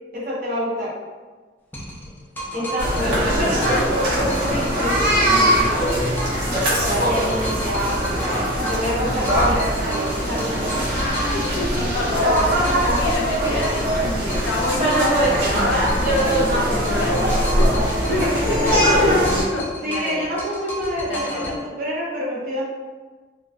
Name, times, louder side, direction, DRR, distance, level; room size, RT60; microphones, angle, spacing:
voice 1, 0.1-0.9 2.5-6.1 6.8-8.2 8.7-10.9 18.0-18.9 19.8-22.6, equal, 50° right, -5 dB, 0.6 m, -27 dB
sound 1, 1.7-4.0 4.3-6.5 6.8-9.0 9.2-14.0 14.3-16.5 16.8-19.0 19.2-21.6, right 1 dB, 10° left, 0.3 m, -34 dB
voice 2, 2.5-3.1 11.2-20.2 21.1-21.5, left 2 dB, 90° left, 0 dB, 0.5 m, -28 dB
sound 2, 2.8-19.4, equal, 80° right, 0.8 m, -21 dB
2.5 x 2.1 x 2.4 m, 1.4 s
head